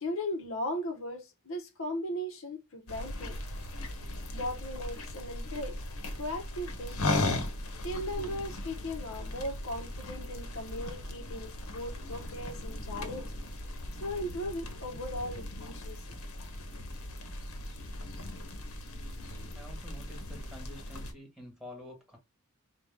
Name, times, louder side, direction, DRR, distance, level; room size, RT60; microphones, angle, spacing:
voice 1, 0.0-3.4 4.3-5.8 6.2-7.1 7.8-13.3 13.9-16.0, left 1 dB, 65° left, 0.9 m, -37 dB
sound 1, 2.9-21.1, left 2 dB, 90° left, 0.9 m, -38 dB
voice 2, 19.5-22.2, left 1 dB, ahead, 1.6 m, -48 dB
4.8 x 2.3 x 3.5 m
head